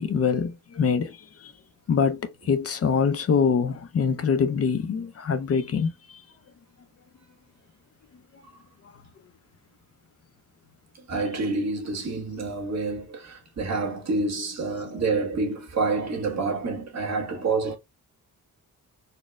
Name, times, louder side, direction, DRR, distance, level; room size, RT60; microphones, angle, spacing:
voice 1, 0.0-1.5 1.9-6.2, left 6 dB, 45° left, 0.5 m, -24 dB
voice 2, 10.9-17.8, right 3 dB, 50° right, 1.5 m, -28 dB
4.2 x 2.1 x 3.4 m
wide cardioid pair, 145°, 33 cm